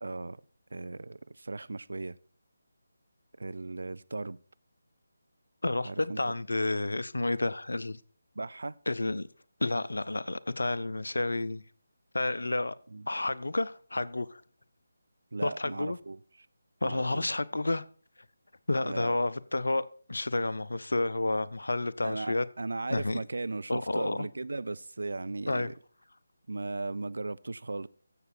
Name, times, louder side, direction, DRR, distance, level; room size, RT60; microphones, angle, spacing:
voice 1, 0.0-0.4 0.7-2.1 3.4-4.4 5.8-6.2 8.4-8.8 12.9-13.1 15.3-16.2 16.8-17.3 18.8-19.2 22.0-25.7 26.5-27.9, right 3 dB, 60° right, 0.5 m, -37 dB
voice 2, 5.6-8.0 8.9-9.3 9.6-11.6 12.1-12.7 13.1-14.4 15.4-16.0 16.8-17.8 18.7-22.5 22.9-23.2 23.7-24.3 25.5-25.7, left 2 dB, 65° left, 0.6 m, -30 dB
13.5 x 7.6 x 4.4 m
figure-of-eight pair, 155°, 0 cm